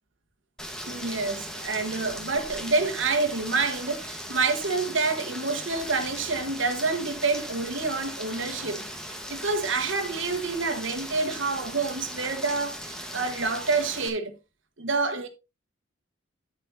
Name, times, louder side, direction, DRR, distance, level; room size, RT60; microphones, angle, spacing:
Rain, 0.6-14.1, equal, 5° left, 1.5 m, -38 dB
voice 1, 0.8-14.3 14.8-15.3, right 3 dB, 75° right, 1.5 m, -28 dB
9.5 x 9.5 x 2.8 m
head